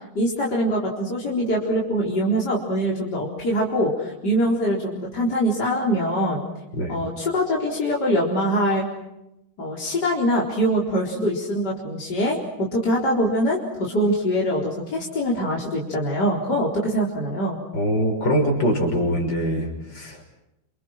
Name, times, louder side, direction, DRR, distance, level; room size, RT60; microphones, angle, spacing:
voice 1, 0.1-6.4 6.9-8.8 9.6-12.4 12.7-17.6, equal, 65° left, -3 dB, 4.9 m, -23 dB
voice 2, 17.7-20.2, equal, 85° left, 3 dB, 6.5 m, -23 dB
29.5 x 27.5 x 6.2 m, 0.87 s
omnidirectional pair, 1.9 m